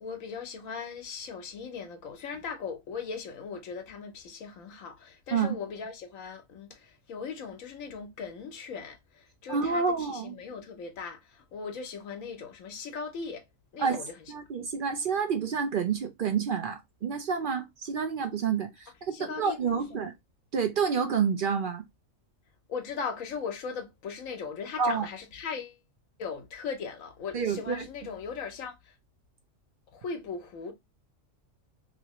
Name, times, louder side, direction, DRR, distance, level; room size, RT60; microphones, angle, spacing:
voice 1, 0.0-13.4 13.7-14.2 19.1-20.1 22.7-25.8 26.2-28.9 29.9-30.7, left 5 dB, 85° left, 1.1 m, -39 dB
voice 2, 9.5-10.3 13.8-14.0 14.3-20.1 20.5-21.8 24.8-25.1 27.3-27.8, right 6 dB, 60° right, 0.5 m, -29 dB
3.0 x 2.8 x 2.9 m
omnidirectional pair, 1.4 m